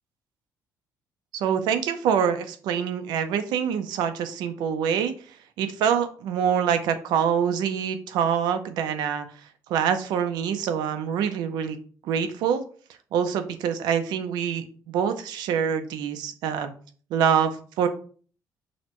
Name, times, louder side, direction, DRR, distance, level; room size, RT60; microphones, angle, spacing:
voice 1, 1.3-5.1 5.6-9.3 9.7-11.8 12.0-12.6 13.1-16.7 17.1-17.9, right 8 dB, 90° right, 9 dB, 0.6 m, -25 dB
6.3 x 2.2 x 3.0 m, 0.42 s
cardioid pair, 160°, 7 cm